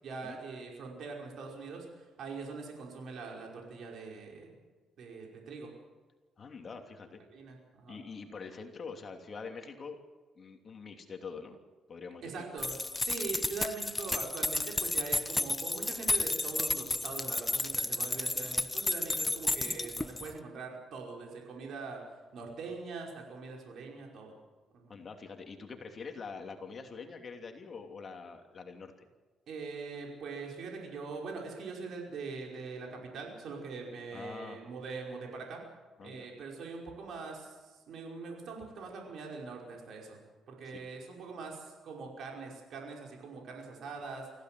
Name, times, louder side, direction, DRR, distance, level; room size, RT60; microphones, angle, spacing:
voice 1, 0.0-4.5 5.0-5.7 7.3-8.0 12.2-12.7 13.0-22.0 22.3-24.4 24.7-24.9 29.5-35.6 36.0-40.2 40.5-44.4, right 4 dB, 70° right, 0 dB, 5.3 m, -42 dB
voice 2, 6.4-7.2 7.9-10.0 10.4-11.6 11.9-12.4 24.9-29.1 34.1-34.6 36.0-36.3 40.6-40.8, left 5 dB, 45° left, 4 dB, 3.0 m, -45 dB
sound 1, 12.6-20.3, left 2 dB, 15° left, 0.9 m, -32 dB
24.5 x 16.0 x 7.8 m, 1.3 s
cardioid pair, 90°, 0 cm